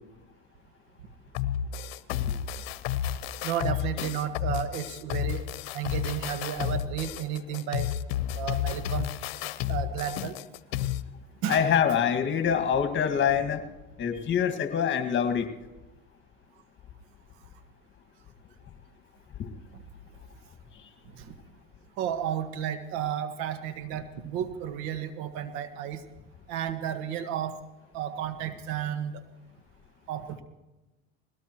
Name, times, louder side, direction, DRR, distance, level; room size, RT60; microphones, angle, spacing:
sound 1, 1.3-11.0, left 11 dB, 80° left, 0.8 m, -31 dB
voice 1, 3.4-5.4 5.7-7.9 8.3-9.1 9.7-10.4 11.4-11.6 21.1-21.3 22.0-26.0 26.5-27.6 27.9-29.2 30.1-30.4, right 9 dB, 65° right, 9 dB, 1.6 m, -32 dB
voice 2, 11.5-13.6 14.0-15.5 19.4-19.5, left 8 dB, 40° left, 8 dB, 2.0 m, -25 dB
20.5 x 17.5 x 3.1 m, 1.0 s
supercardioid pair, 95°, 30 cm